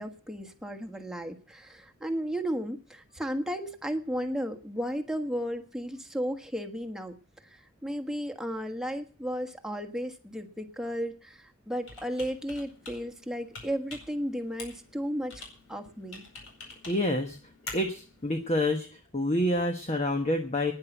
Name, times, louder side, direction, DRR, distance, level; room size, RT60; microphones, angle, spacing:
voice 1, 0.0-7.2 7.4-15.4 15.7-16.2, equal, 5° right, 3 dB, 1.4 m, -34 dB
Computer keyboard, 11.8-18.5, left 3 dB, 65° left, 4.7 m, -47 dB
voice 2, 16.9-17.4 17.7-18.9 19.1-20.7, left 1 dB, 30° left, 5 dB, 1.2 m, -27 dB
10.5 x 9.9 x 9.1 m, 0.43 s
head